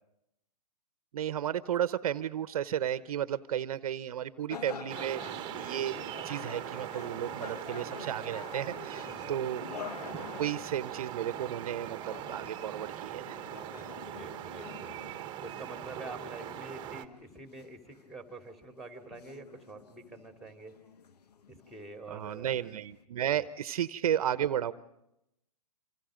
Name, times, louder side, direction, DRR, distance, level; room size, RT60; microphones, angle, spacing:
voice 1, 1.1-5.2 5.5-9.6 10.4-13.4 22.1-24.7, right 10 dB, 60° right, 14 dB, 1.0 m, -33 dB
sound 1, 4.5-23.0, left 7 dB, 75° left, 1.2 m, -48 dB
sound 2, 4.9-17.1, right 12 dB, 25° right, 1.4 m, -41 dB
voice 2, 9.0-9.4 13.6-15.0 15.4-20.7 21.5-22.6, right 2 dB, ahead, 5 dB, 3.2 m, -47 dB
27.0 x 26.5 x 5.2 m, 0.82 s
hypercardioid pair, 140°, 21 cm